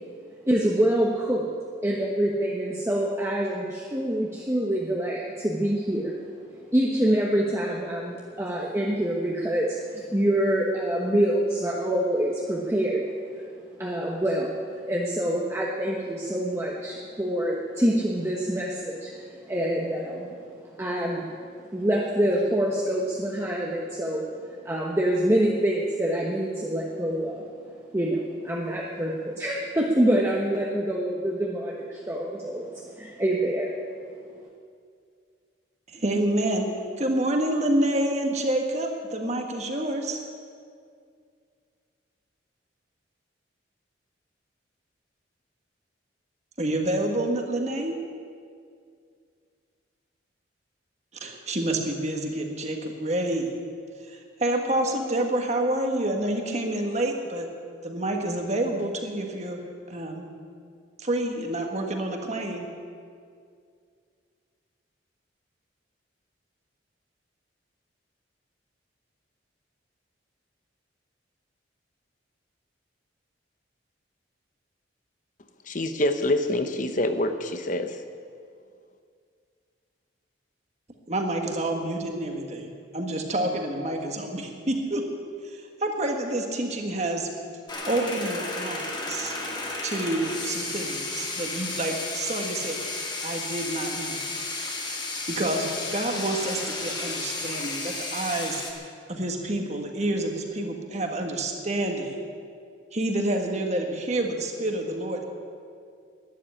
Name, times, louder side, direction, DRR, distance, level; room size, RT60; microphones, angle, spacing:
voice 1, 0.5-1.5 1.8-6.1 6.7-13.0 13.4-13.5 13.8-14.6 14.8-24.3 24.6-33.7, right 1 dB, 15° right, -3 dB, 1.2 m, -26 dB
voice 2, 35.9-36.7 37.0-40.2 46.6-47.9 51.2-53.5 54.1-57.5 57.8-59.6 59.9-60.3 61.0-62.7 81.1-85.2 85.4-87.3 87.8-89.3 89.8-92.8 93.2-94.2 95.3-98.6 99.1-102.2 102.9-105.2, right 1 dB, 35° right, 3 dB, 1.7 m, -28 dB
voice 3, 75.7-78.0, left 1 dB, 40° left, 8 dB, 0.9 m, -26 dB
sound 1, 87.7-98.7, left 3 dB, 25° left, 1.8 m, -33 dB
12.0 x 10.5 x 9.7 m, 2.2 s
head